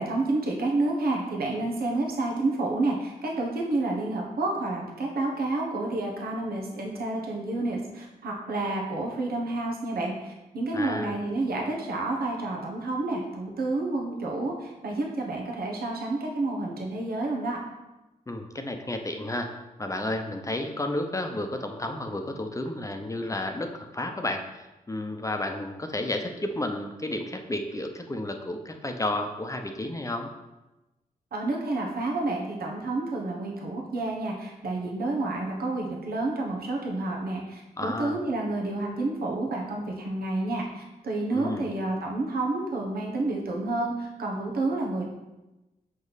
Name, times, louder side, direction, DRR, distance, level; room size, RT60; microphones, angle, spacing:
voice 1, 0.0-17.6 31.3-45.0, right 2 dB, 80° right, 0 dB, 1.2 m, -29 dB
voice 2, 10.7-11.2 18.3-19.5 19.8-30.3 37.8-38.2 41.3-41.7, left 1 dB, 20° left, 5 dB, 0.7 m, -32 dB
6.2 x 5.1 x 4.1 m, 1.0 s
cardioid pair, 75°, 15 cm